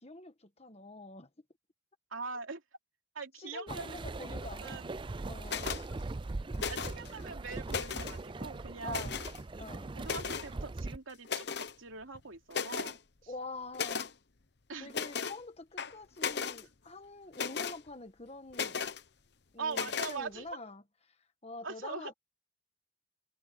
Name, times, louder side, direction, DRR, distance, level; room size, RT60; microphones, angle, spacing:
voice 1, 0.0-1.3 3.4-4.8 5.2-5.6 8.8-9.2 9.6-9.9 13.3-14.1 14.8-18.9 19.5-20.8 21.4-22.1, left 2 dB, 30° left, 1.5 m, -46 dB
voice 2, 2.1-2.6 3.1-4.9 5.6-5.7 6.7-9.2 9.9-13.0 13.2-13.3 14.7-15.0 19.6-20.5 21.6-22.1, right 4 dB, 85° right, 3.0 m, -42 dB
sound 1, 3.7-11.0, right 2 dB, 25° right, 0.4 m, -40 dB
sound 2, 5.4-5.8 6.5-7.1 7.5-8.2 8.9-9.4 10.0-10.5 11.2-11.7 12.1-12.2 12.5-13.0 13.7-14.1 14.9-15.4 15.8-16.6 17.3-17.8 18.5-19.0 19.7-20.2, left 6 dB, 55° left, 1.0 m, -36 dB
head